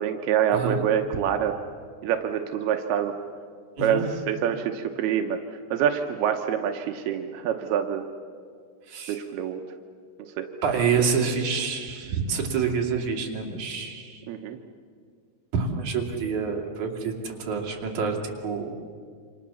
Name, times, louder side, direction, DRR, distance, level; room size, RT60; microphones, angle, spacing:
voice 1, 0.0-1.5 2.0-3.2 3.8-5.4 5.7-8.0 9.1-9.6 10.4-10.5 14.3-14.6, right 9 dB, 85° right, 4 dB, 3.0 m, -26 dB
voice 2, 10.6-14.2 15.5-18.7, right 5 dB, 55° right, 1 dB, 3.9 m, -27 dB
28.0 x 26.5 x 7.1 m, 2.1 s
omnidirectional pair, 4.4 m